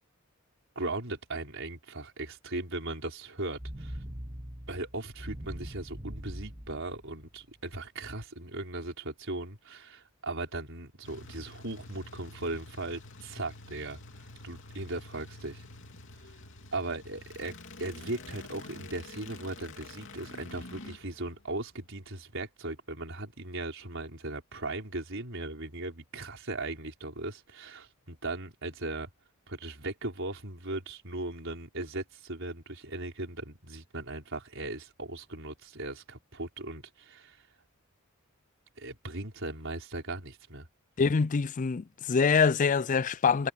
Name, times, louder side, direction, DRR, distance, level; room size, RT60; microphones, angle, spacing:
voice 1, 0.8-4.0 4.7-14.0 14.4-15.6 16.7-29.1 29.5-37.4 38.8-40.7, right 2 dB, 60° right, 5.4 m, -38 dB
sound 1, 3.5-7.6, equal, 25° right, 2.3 m, -42 dB
sound 2, 11.0-22.2, left 2 dB, 60° left, 3.2 m, -48 dB
voice 2, 41.0-43.5, left 5 dB, 35° left, 0.4 m, -25 dB
head